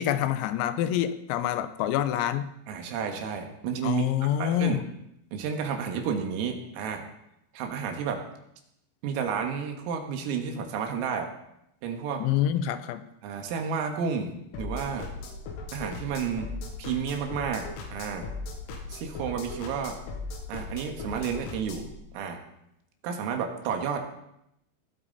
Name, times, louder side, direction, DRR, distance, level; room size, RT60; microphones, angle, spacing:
voice 1, 0.0-2.5 3.8-4.8 12.2-13.0, left 11 dB, 90° left, 11 dB, 3.6 m, -26 dB
voice 2, 2.7-4.8 5.3-7.0 7.5-8.2 9.0-11.3 11.8-12.3 13.2-15.1 15.7-16.5 16.8-18.3 18.9-20.0 20.5-21.9 22.1-22.4 23.0-24.1, right 6 dB, 85° right, 4 dB, 4.4 m, -31 dB
sound 1, 14.5-21.9, left 3 dB, 75° left, 4.4 m, -38 dB
19.5 x 12.5 x 4.2 m, 0.79 s
omnidirectional pair, 5.9 m